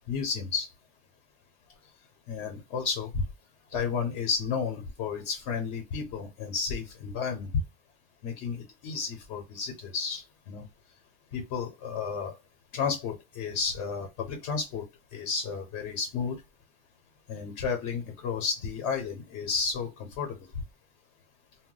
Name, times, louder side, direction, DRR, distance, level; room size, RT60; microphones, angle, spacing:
voice 1, 0.1-0.7 2.3-3.2 3.7-7.5 8.2-10.6 11.3-12.3 12.7-14.8 15.1-16.4 17.3-19.9 20.2-20.5, left 5 dB, 85° left, 0.9 m, -32 dB
2.2 x 2.2 x 3.6 m
omnidirectional pair, 1.1 m